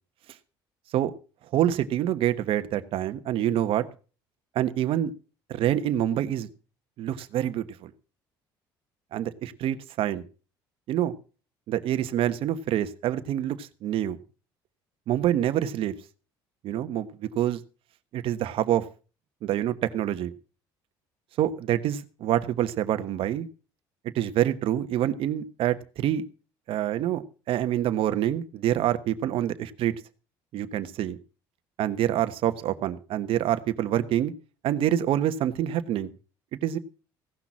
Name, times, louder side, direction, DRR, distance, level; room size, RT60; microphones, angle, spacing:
voice 1, 1.5-3.9 4.5-5.1 5.5-6.5 7.0-7.9 9.1-10.2 10.9-11.1 11.7-14.2 15.1-15.9 16.6-17.6 18.1-18.8 19.4-20.3 21.4-23.5 24.1-26.3 26.7-30.0 30.5-31.2 31.8-34.3 34.6-36.1 36.6-36.8, right 11 dB, 65° right, 11 dB, 1.2 m, -26 dB
16.5 x 6.0 x 7.3 m, 0.36 s
supercardioid pair, 85°, 10 cm